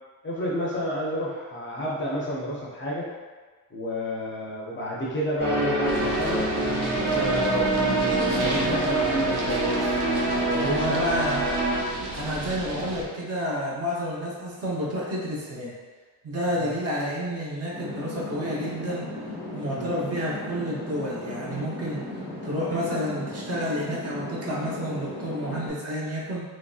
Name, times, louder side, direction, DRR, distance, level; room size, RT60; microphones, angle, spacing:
voice 1, 0.2-3.1 3.7-6.5 6.9-11.2 16.6-16.7 19.7-19.9, equal, 30° left, -5 dB, 0.5 m, -31 dB
sound 1, 5.4-11.8, right 2 dB, 25° right, 1.1 m, -25 dB
sound 2, 5.8-13.0, right 2 dB, 75° right, 0.7 m, -35 dB
voice 2, 10.5-11.4 12.1-15.7 16.2-19.1 19.5-22.0 22.4-26.4, equal, 40° right, -5 dB, 0.7 m, -30 dB
sound 3, 17.7-25.7, left 1 dB, 5° right, 0.8 m, -36 dB
3.0 x 2.6 x 2.3 m, 1.4 s
cardioid pair, 150°, 38 cm